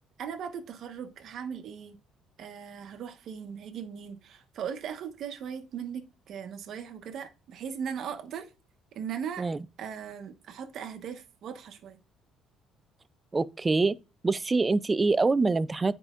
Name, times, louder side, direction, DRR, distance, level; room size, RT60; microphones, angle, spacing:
voice 1, 0.2-2.0 2.4-8.5 8.9-9.5 9.8-12.0, right 7 dB, 55° right, 1.3 m, -38 dB
voice 2, 13.3-14.0 14.2-16.0, right 3 dB, 20° right, 0.4 m, -25 dB
9.7 x 4.9 x 2.5 m
cardioid pair, 135°, 0 cm